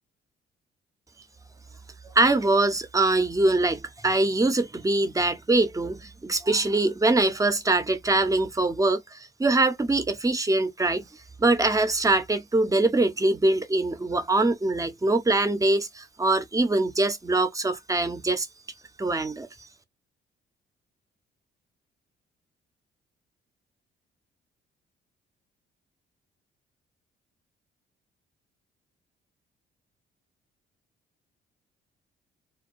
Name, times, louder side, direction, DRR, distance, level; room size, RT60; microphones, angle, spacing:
voice 1, 2.0-11.0 11.4-18.5 19.0-19.5, right 2 dB, 15° right, 0.6 m, -23 dB
2.3 x 2.2 x 2.5 m
cardioid pair, 90°, 20 cm